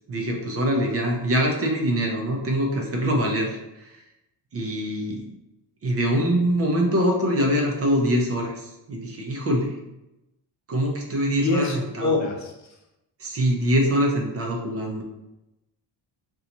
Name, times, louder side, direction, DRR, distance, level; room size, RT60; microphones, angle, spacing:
voice 1, 0.1-3.6 3.9-4.0 4.5-5.2 5.8-9.7 10.7-12.2 13.2-15.0, equal, 35° right, 0 dB, 0.5 m, -24 dB
voice 2, 11.3-12.5, left 3 dB, 45° left, 1 dB, 0.4 m, -25 dB
2.9 x 2.3 x 3.8 m, 0.94 s
cardioid pair, 160°, 44 cm